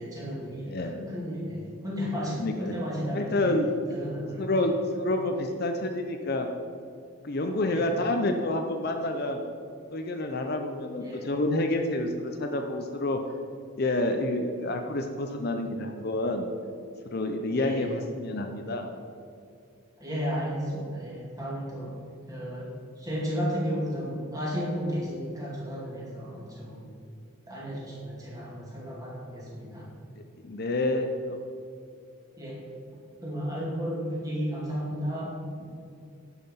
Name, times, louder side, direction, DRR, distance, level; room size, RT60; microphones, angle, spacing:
voice 1, 0.0-3.5 3.9-4.5 7.7-7.9 11.0-11.3 17.6-17.9 20.0-21.9 22.3-22.7 23.0-26.8 27.5-29.9 32.4-32.6 33.2-35.3, equal, 15° right, -5 dB, 2.4 m, -33 dB
voice 2, 2.3-2.7 3.1-3.7 4.4-6.5 7.2-9.4 9.9-13.2 13.8-16.4 17.0-18.9 30.4-31.4, left 2 dB, 45° left, 5 dB, 0.6 m, -28 dB
10.5 x 5.8 x 5.6 m, 2.5 s
head